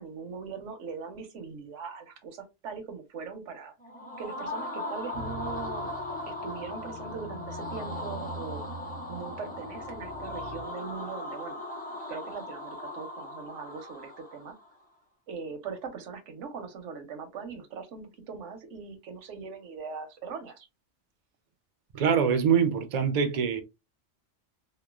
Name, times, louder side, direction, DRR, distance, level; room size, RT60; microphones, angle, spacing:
voice 1, 0.0-3.7 4.2-5.9 6.3-8.6 9.1-11.6 12.1-14.6 15.3-20.7, right 5 dB, 85° right, 1.0 m, -40 dB
sound 1, 3.8-14.7, left 1 dB, 10° left, 0.5 m, -38 dB
sound 2, 5.1-10.6, equal, 60° left, 0.7 m, -44 dB
voice 2, 21.9-23.6, right 7 dB, 60° right, 0.4 m, -24 dB
3.0 x 2.1 x 2.3 m
omnidirectional pair, 1.2 m